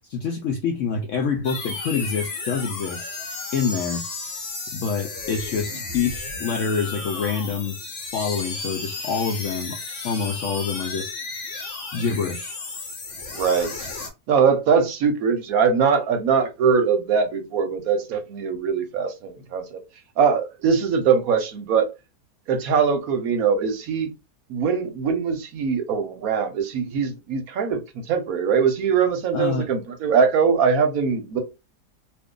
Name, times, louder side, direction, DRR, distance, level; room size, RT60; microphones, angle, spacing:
voice 1, 0.1-3.1 3.5-4.0 4.7-7.8 8.1-9.8 10.0-11.1 11.9-12.6 29.3-29.7, left 5 dB, 75° left, 0.7 m, -26 dB
sound 1, 1.4-14.1, left 3 dB, 50° left, 1.2 m, -33 dB
voice 2, 13.3-13.9 14.3-19.8 20.2-21.9 22.5-24.1 24.5-31.4, right 6 dB, 65° right, 1.0 m, -22 dB
2.6 x 2.5 x 3.6 m
omnidirectional pair, 1.8 m